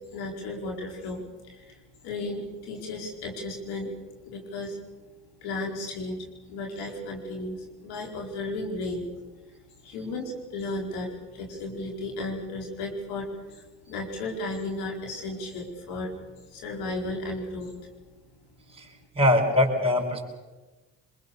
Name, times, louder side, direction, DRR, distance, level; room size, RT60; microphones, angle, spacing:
voice 1, 0.1-3.9 4.2-4.8 5.4-9.1 9.5-9.6 9.8-16.1 16.4-17.7, left 2 dB, 75° left, 0 dB, 5.0 m, -34 dB
voice 2, 18.7-20.3, left 1 dB, 15° right, -4 dB, 5.1 m, -23 dB
25.0 x 22.5 x 6.9 m, 1.2 s
hypercardioid pair, 55°, 37 cm